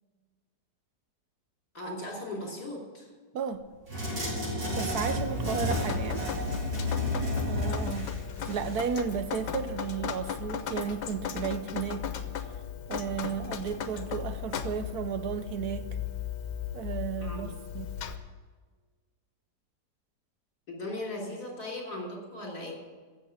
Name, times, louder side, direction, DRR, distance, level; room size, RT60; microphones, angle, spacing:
voice 1, 1.7-3.1 17.2-17.5 20.7-22.7, left 1 dB, 60° left, -2 dB, 4.2 m, -38 dB
voice 2, 3.3-3.6 4.8-6.2 7.5-8.1 8.5-12.1 12.9-15.9 16.7-17.9, right 7 dB, 70° right, 11 dB, 1.1 m, -33 dB
sound 1, 3.9-8.9, left 1 dB, 90° right, 5.9 m, -31 dB
Drip, 5.2-18.2, left 8 dB, 85° left, 1.6 m, -37 dB
15.0 x 7.4 x 8.5 m, 1.4 s
omnidirectional pair, 1.9 m